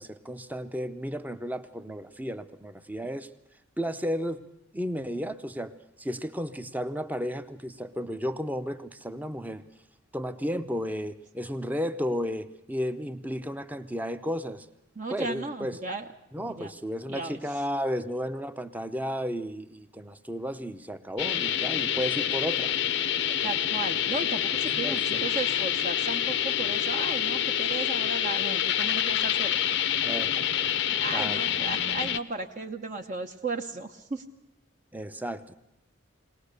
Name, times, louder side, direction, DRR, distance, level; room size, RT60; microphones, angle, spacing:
voice 1, 0.0-3.3 3.8-4.4 4.7-5.7 6.0-9.6 10.1-14.7 15.1-15.8 16.3-22.8 24.6-25.2 30.0-30.4 31.1-31.4 34.9-35.6, equal, 10° right, 10 dB, 0.7 m, -33 dB
voice 2, 15.0-16.1 16.5-16.7 17.1-17.4 21.7-21.8 23.4-29.6 31.0-34.2, right 3 dB, 35° right, 4 dB, 0.9 m, -35 dB
sound 1, 21.2-32.2, left 10 dB, 55° left, 0.7 m, -27 dB
21.5 x 19.0 x 6.7 m, 0.89 s
head